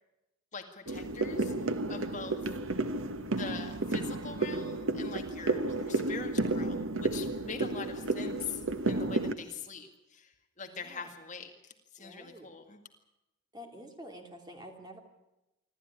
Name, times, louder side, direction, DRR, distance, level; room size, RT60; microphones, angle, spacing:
voice 1, 0.5-2.4 3.3-12.8, left 5 dB, 35° left, 4 dB, 2.1 m, -43 dB
sound 1, 0.9-9.3, right 2 dB, 80° right, 1.2 m, -32 dB
voice 2, 10.6-11.1 12.0-12.5 13.5-15.0, equal, 20° right, 3 dB, 2.9 m, -48 dB
26.0 x 13.0 x 9.9 m, 0.94 s
head